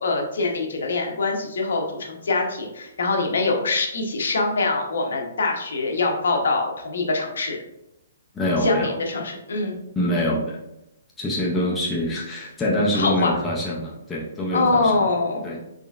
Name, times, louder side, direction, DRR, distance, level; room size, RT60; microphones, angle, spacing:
voice 1, 0.0-7.6 8.6-9.8 12.9-13.3 14.5-15.4, left 3 dB, 70° left, 2 dB, 0.8 m, -24 dB
voice 2, 8.3-8.9 10.0-10.6 11.2-15.0 15.4-15.6, left 1 dB, 5° left, -5 dB, 0.4 m, -25 dB
3.7 x 3.2 x 2.3 m, 0.86 s
hypercardioid pair, 175°, 0 cm